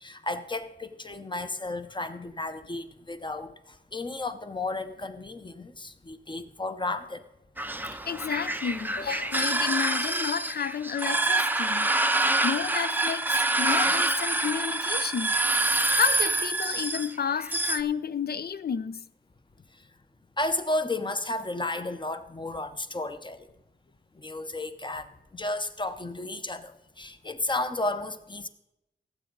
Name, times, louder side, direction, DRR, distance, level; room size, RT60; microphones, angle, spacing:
voice 1, 0.0-3.5 3.9-7.2 20.4-23.5 24.2-26.7 27.0-28.5, left 2 dB, 25° left, 0.8 m, -33 dB
sound 1, 7.6-17.8, right 2 dB, 10° right, 0.5 m, -26 dB
voice 2, 8.0-11.9 12.4-19.0, left 7 dB, 55° left, 0.5 m, -31 dB
17.5 x 7.9 x 3.9 m
wide cardioid pair, 90°, 19 cm